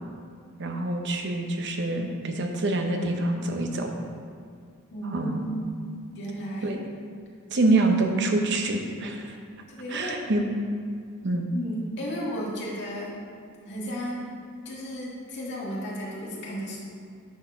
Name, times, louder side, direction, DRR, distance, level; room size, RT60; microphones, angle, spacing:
voice 1, 0.6-4.0 5.1-5.5 6.6-6.8 7.5-9.3 9.9-10.4 11.2-11.5, right 2 dB, 55° right, 4 dB, 0.8 m, -26 dB
voice 2, 4.9-5.8 6.2-6.8 9.7-10.3 11.5-13.2 13.6-14.3 14.7-16.8, equal, 55° left, -4 dB, 1.7 m, -34 dB
9.5 x 4.5 x 4.5 m, 2.2 s
head